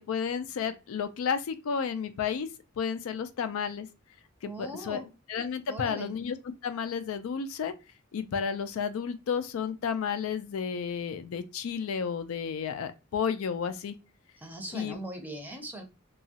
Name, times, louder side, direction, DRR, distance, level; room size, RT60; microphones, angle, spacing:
voice 1, 0.0-2.5 2.8-3.9 4.4-5.0 5.3-6.4 6.6-7.7 8.1-13.9 14.7-15.0, left 6 dB, 90° left, 0.4 m, -32 dB
voice 2, 4.5-5.1 5.7-6.1 14.4-15.8, right 1 dB, 10° right, 0.5 m, -40 dB
2.9 x 2.3 x 2.7 m
head